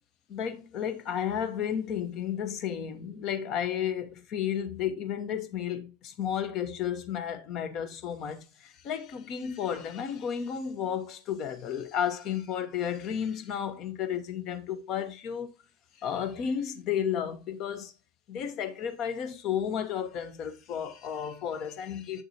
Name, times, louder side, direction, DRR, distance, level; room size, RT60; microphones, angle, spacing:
voice 1, 0.3-15.5 16.0-17.9 18.3-22.2, left 8 dB, 35° left, 1.1 m, -32 dB
7.8 x 6.6 x 2.9 m
figure-of-eight pair, 90°, 0 cm